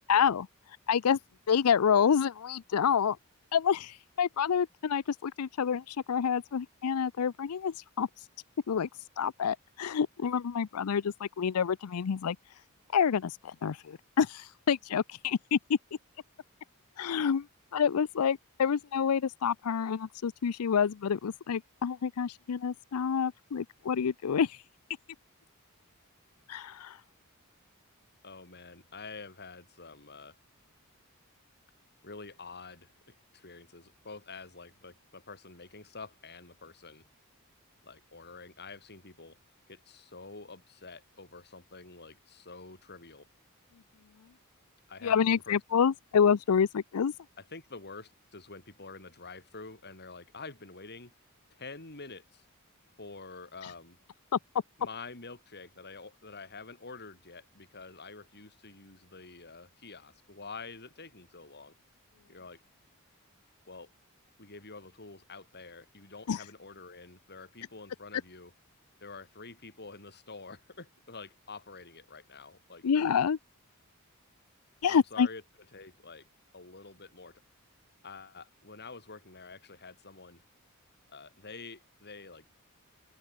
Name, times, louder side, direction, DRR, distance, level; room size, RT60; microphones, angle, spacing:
voice 1, 0.1-1.2 1.5-3.2 3.5-8.3 8.7-12.6 12.9-15.8 17.0-17.5 17.7-24.6 26.5-27.0 45.0-47.1 53.6-53.7 54.3-54.4 66.3-66.4 72.8-73.4 74.8-75.3, left 7 dB, 80° left, 0.5 m, -28 dB
voice 2, 28.2-30.4 32.0-37.0 37.8-39.4 39.7-43.3 44.9-45.6 47.4-51.1 51.5-52.4 53.0-54.0 54.8-61.7 62.3-62.6 63.7-63.9 64.4-68.5 69.0-72.9 74.9-75.4 75.7-76.3 76.5-77.4 78.0-80.4 81.1-82.4, left 4 dB, 50° left, 6.8 m, -47 dB
open air
head